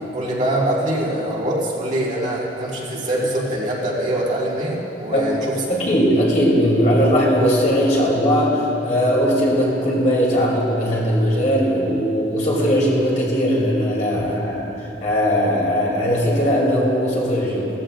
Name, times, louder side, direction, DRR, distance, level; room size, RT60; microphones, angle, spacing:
voice 1, 0.0-5.8, right 1 dB, 45° right, -5 dB, 2.0 m, -24 dB
voice 2, 5.1-5.4 5.7-14.7 15.0-17.7, equal, 45° left, -5 dB, 2.9 m, -19 dB
17.0 x 14.5 x 2.5 m, 3.0 s
head